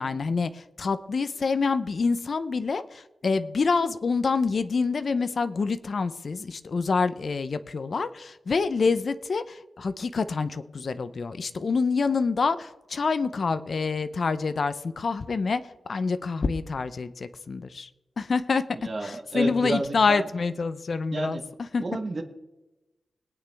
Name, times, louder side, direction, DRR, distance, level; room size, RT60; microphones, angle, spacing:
voice 1, 0.0-17.9 18.2-18.6 19.0-21.4 21.7-21.8, left 4 dB, 50° left, 12 dB, 0.6 m, -27 dB
voice 2, 18.8-20.3 21.1-21.4 21.8-22.2, right 2 dB, 40° right, 4 dB, 1.2 m, -30 dB
21.0 x 9.1 x 3.5 m, 1.0 s
wide cardioid pair, 125°, 0 cm